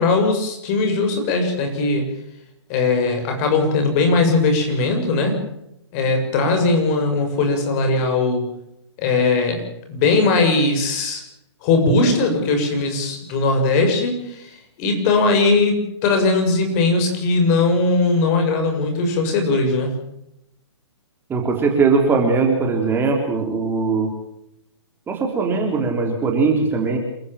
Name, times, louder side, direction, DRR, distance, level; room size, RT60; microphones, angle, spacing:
voice 1, 0.0-2.1 2.7-5.4 5.9-8.5 9.0-9.6 9.9-11.2 11.6-19.9, left 3 dB, 35° left, 5 dB, 6.9 m, -19 dB
voice 2, 21.3-24.1 25.1-27.0, right 4 dB, 15° right, 2 dB, 3.7 m, -20 dB
28.0 x 15.0 x 7.5 m, 0.79 s
figure-of-eight pair, 130°, 15 cm